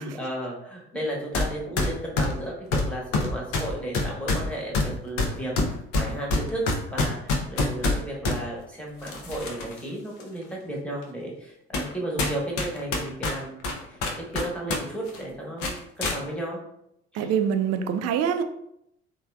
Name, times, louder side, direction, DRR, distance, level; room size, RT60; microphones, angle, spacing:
voice 1, 0.0-4.8 5.0-5.5 5.9-6.6 6.9-13.6 13.9-16.6 17.1-17.3, right 1 dB, 5° left, -3 dB, 1.1 m, -34 dB
sound 1, 1.3-1.5 1.8-8.4 9.0-9.8 10.2-10.3 11.0-11.1 11.7-11.9 12.2-14.8 15.1-15.2 15.6-16.2, left 2 dB, 70° left, 0.6 m, -26 dB
voice 2, 17.1-18.4, right 8 dB, 55° right, 8 dB, 0.4 m, -24 dB
3.2 x 2.2 x 2.3 m, 0.77 s
hypercardioid pair, 50°, 32 cm